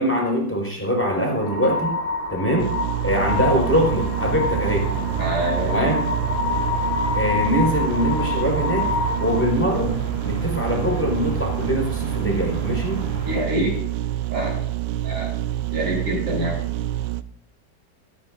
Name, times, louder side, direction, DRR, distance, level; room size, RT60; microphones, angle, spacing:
voice 1, 0.0-2.0 2.3-2.7 3.0-4.9 5.6-6.0 7.1-8.9 9.2-13.0, equal, 5° left, 0 dB, 4.6 m, -23 dB
sound 1, 1.4-9.5, left 4 dB, 65° left, 2.2 m, -27 dB
sound 2, 2.6-17.2, right 13 dB, 85° right, 1.3 m, -27 dB
sound 3, 3.0-13.4, right 2 dB, 35° right, 3.5 m, -34 dB
voice 2, 4.9-5.9 13.2-13.8 14.3-14.6 15.0-15.3 15.7-16.6, right 1 dB, 65° right, -4 dB, 5.6 m, -26 dB
24.0 x 10.5 x 2.5 m, 0.65 s
omnidirectional pair, 1.9 m